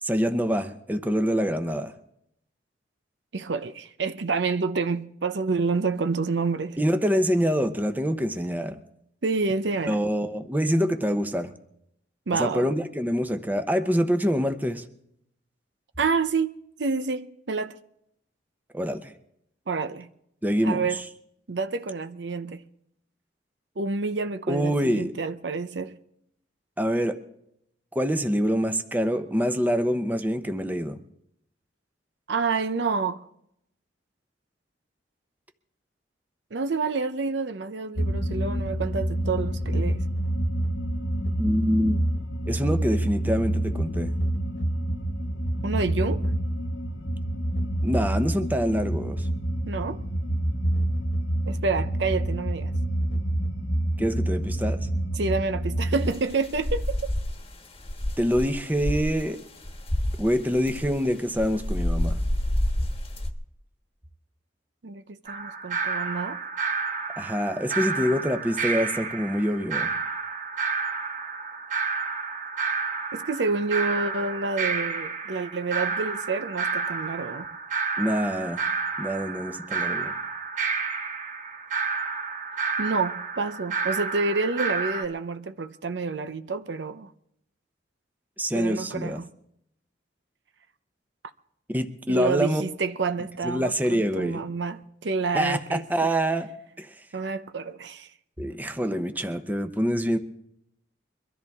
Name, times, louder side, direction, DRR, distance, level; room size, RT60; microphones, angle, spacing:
voice 1, 0.0-1.9 6.8-8.8 9.9-11.5 12.3-14.8 18.7-19.1 20.4-21.0 24.5-25.1 26.8-27.2 27.9-31.0 41.4-42.0 42.5-44.1 47.8-49.3 54.0-54.8 58.2-59.4 60.2-62.2 67.2-69.9 78.0-78.6 79.0-80.1 88.4-89.2 91.7-92.6 93.4-94.5 95.3-96.5 96.8-96.9 98.4-100.2, equal, 10° right, 0.9 m, -25 dB
voice 2, 3.3-6.8 9.2-10.0 12.3-12.7 16.0-16.5 16.8-17.8 19.7-20.1 20.6-21.0 21.5-22.6 23.8-26.0 32.3-33.2 36.5-40.0 45.6-46.2 49.7-50.0 51.5-52.7 55.1-57.1 64.8-66.4 73.1-77.5 82.8-87.1 88.5-89.3 92.1-95.8 97.1-98.1, right 4 dB, 70° right, 0.7 m, -28 dB
sound 1, 38.0-56.1, right 1 dB, 75° left, 1.7 m, -27 dB
sound 2, 56.0-57.4 57.8-59.2 59.6-61.0 61.4-63.3, left 1 dB, 30° left, 1.3 m, -28 dB
sound 3, 65.3-85.0, right 4 dB, 45° right, 1.3 m, -30 dB
23.5 x 13.5 x 3.6 m
head